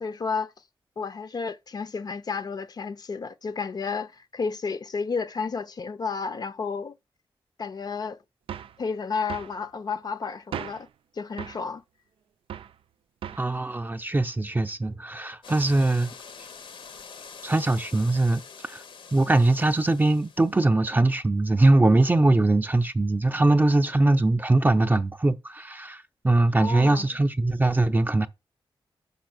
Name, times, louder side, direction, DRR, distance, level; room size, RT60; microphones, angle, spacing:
voice 1, 0.0-0.5 1.0-6.9 7.6-8.2 8.8-10.9 11.1-11.8 26.6-27.1, left 5 dB, 50° left, 0.6 m, -31 dB
sound 1, 8.5-8.8 9.3-9.6 10.5-10.9 11.4-11.7 12.5-12.8 13.2-13.5, right 9 dB, 80° right, 0.4 m, -37 dB
voice 2, 13.4-16.1 17.4-18.8 19.1-28.3, right 2 dB, 20° right, 0.6 m, -22 dB
sound 2, 15.4-20.7, left 6 dB, 70° left, 0.9 m, -45 dB
6.0 x 5.7 x 6.0 m
wide cardioid pair, 110°, 9 cm